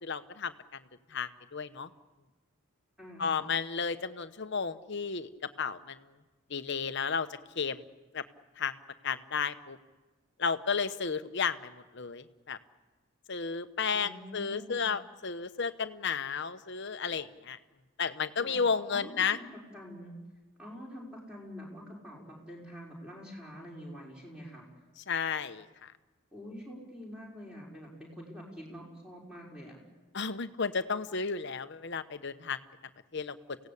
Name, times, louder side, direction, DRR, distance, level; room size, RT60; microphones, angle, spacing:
voice 1, 0.0-0.5 1.1-1.9 3.2-5.3 5.6-6.0 6.5-7.3 7.5-7.8 8.1-8.2 8.6-8.7 9.0-9.8 10.4-12.6 13.3-17.6 18.0-19.4 25.1-25.9 30.1-32.6 33.1-33.4, left 5 dB, 50° left, 10 dB, 0.9 m, -33 dB
voice 2, 3.0-3.5 13.9-14.9 18.4-18.6 18.9-20.1 20.6-24.7 26.3-29.8, equal, 5° right, -3 dB, 5.2 m, -46 dB
28.5 x 17.0 x 8.5 m, 1.2 s
head